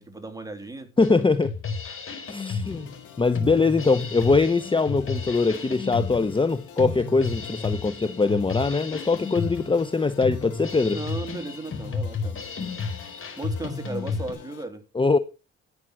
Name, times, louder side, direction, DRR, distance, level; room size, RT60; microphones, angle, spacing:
voice 1, 0.0-1.0 10.9-12.6 13.4-14.8, right 2 dB, 10° right, 3.2 m, -36 dB
Drum kit, 1.0-14.3, left 4 dB, 45° left, 4.5 m, -32 dB
voice 2, 1.0-1.5 2.3-2.9 3.2-11.0 14.9-15.2, left 4 dB, 15° left, 0.8 m, -22 dB
sound 1, 2.6-14.7, left 9 dB, 85° left, 3.3 m, -48 dB
11.5 x 9.2 x 6.1 m
cardioid pair, 90°, 30 cm